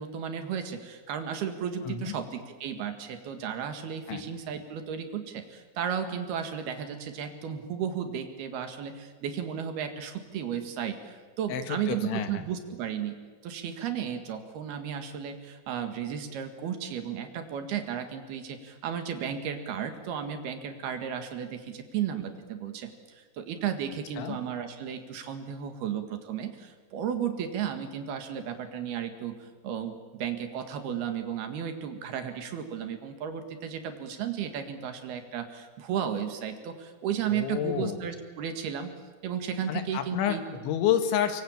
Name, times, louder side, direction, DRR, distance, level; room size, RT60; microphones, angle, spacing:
voice 1, 0.0-13.2 13.4-38.9 39.2-40.4, right 8 dB, 65° right, 7 dB, 3.5 m, -34 dB
voice 2, 1.8-2.2 4.1-4.2 11.5-12.4 24.2-24.4 37.3-38.0 39.7-41.4, left 9 dB, 80° left, 8 dB, 4.1 m, -29 dB
24.0 x 23.5 x 8.8 m, 1.4 s
omnidirectional pair, 5.3 m